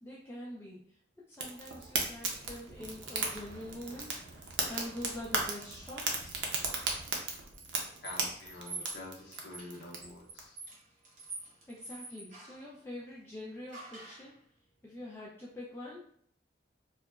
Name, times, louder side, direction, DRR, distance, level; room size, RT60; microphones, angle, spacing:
voice 1, 0.0-6.4 11.7-14.3 14.8-16.1, left 1 dB, 15° left, -6 dB, 0.3 m, -45 dB
Fire, 1.3-10.4, right 4 dB, 85° right, 0.5 m, -37 dB
sound 1, 4.7-6.6 7.5-12.7 13.7-14.3, right 3 dB, 45° right, 0.8 m, -48 dB
voice 2, 8.0-10.6, left 2 dB, 70° left, -2 dB, 0.5 m, -47 dB
2.8 x 2.2 x 2.2 m, 0.64 s
head